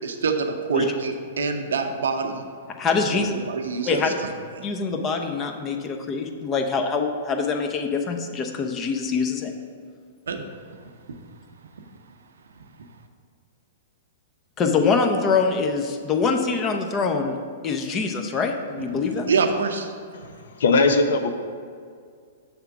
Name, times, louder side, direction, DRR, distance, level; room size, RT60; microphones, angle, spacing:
voice 1, 0.0-2.5 3.4-4.3 4.6-4.7 10.3-10.4 18.9-20.3, right 4 dB, 80° right, 6 dB, 0.6 m, -26 dB
voice 2, 2.8-3.3 3.9-4.1 4.6-9.5 14.6-17.4 17.6-19.3, left 5 dB, 25° left, 4 dB, 0.7 m, -24 dB
voice 3, 20.1-21.3, left 3 dB, 75° left, 6 dB, 0.6 m, -20 dB
6.9 x 3.6 x 5.9 m, 2.2 s
hypercardioid pair, 120°, 0 cm